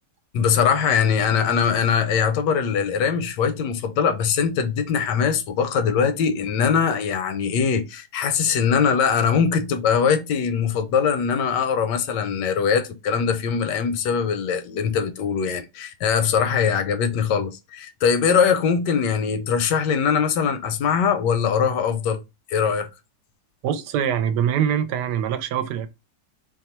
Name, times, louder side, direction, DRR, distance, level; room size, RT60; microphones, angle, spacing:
voice 1, 0.3-22.2 22.5-22.9, left 6 dB, 80° left, 1.2 m, -22 dB
voice 2, 23.6-25.9, right 9 dB, 75° right, 1.1 m, -23 dB
2.9 x 2.2 x 4.1 m
omnidirectional pair, 1.9 m